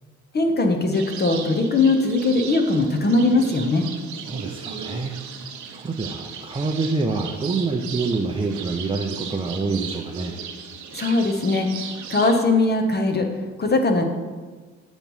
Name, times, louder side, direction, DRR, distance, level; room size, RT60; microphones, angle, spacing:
voice 1, 0.3-3.9 10.9-11.7 12.1-13.3 13.6-14.0, left 2 dB, 35° left, 5 dB, 0.7 m, -20 dB
sound 1, 0.9-12.4, right 7 dB, 75° right, 0.7 m, -36 dB
voice 2, 4.2-5.2 5.7-10.4, right 3 dB, 15° right, 1 dB, 0.5 m, -26 dB
8.3 x 3.1 x 5.3 m, 1.4 s
cardioid pair, 90°, 30 cm